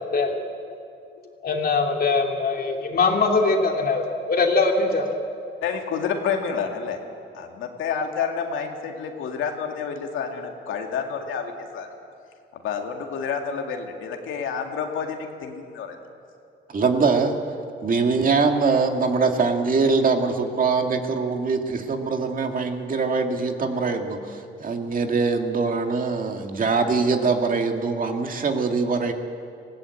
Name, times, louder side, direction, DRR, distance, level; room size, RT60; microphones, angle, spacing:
voice 1, 1.4-5.1, left 4 dB, 50° left, 2 dB, 2.8 m, -22 dB
voice 2, 5.6-7.0 7.3-11.9 12.5-16.0, left 6 dB, 85° left, 3 dB, 2.1 m, -29 dB
voice 3, 16.7-17.3 17.8-29.1, right 4 dB, 45° right, 4 dB, 2.0 m, -23 dB
19.0 x 16.5 x 8.4 m, 2.5 s
cardioid pair, 90°, 20 cm